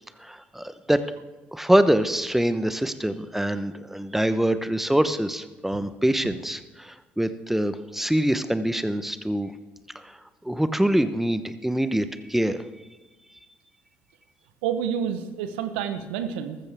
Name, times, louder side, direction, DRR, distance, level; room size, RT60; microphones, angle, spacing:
voice 1, 0.2-1.0 1.5-9.5 10.0-10.2 10.4-12.6, right 1 dB, 5° right, 12 dB, 1.0 m, -24 dB
voice 2, 14.6-16.6, right 8 dB, 80° right, 9 dB, 1.0 m, -29 dB
14.5 x 14.0 x 3.6 m, 1.2 s
hypercardioid pair, 55°, 6 cm